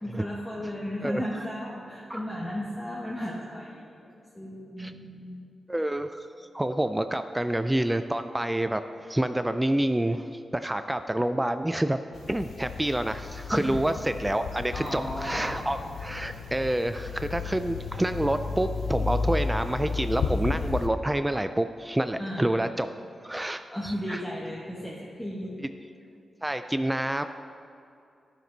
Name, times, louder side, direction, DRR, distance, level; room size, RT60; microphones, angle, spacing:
voice 1, 0.0-4.0 4.3-5.4 13.5-13.7 14.7-15.9 22.2-22.5 23.7-25.6, equal, 15° left, -5 dB, 1.3 m, -35 dB
voice 2, 5.7-12.0 12.3-22.9 23.2-24.2 26.4-27.2, right 1 dB, 10° right, 9 dB, 0.3 m, -28 dB
sound 1, 12.1-20.9, left 4 dB, 85° left, 0.6 m, -33 dB
13.0 x 6.1 x 4.0 m, 2.6 s
cardioid pair, 80°, 0 cm